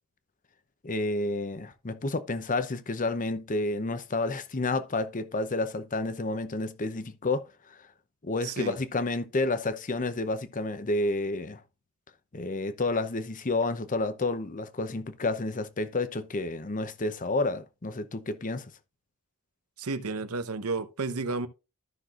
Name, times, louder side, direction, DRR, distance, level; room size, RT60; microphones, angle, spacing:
voice 1, 0.8-7.8 8.2-11.6 12.3-18.7, left 2 dB, 35° left, 0.7 m, -30 dB
voice 2, 8.4-8.8 19.8-21.5, right 3 dB, 85° right, 0.9 m, -32 dB
14.0 x 5.9 x 2.5 m
head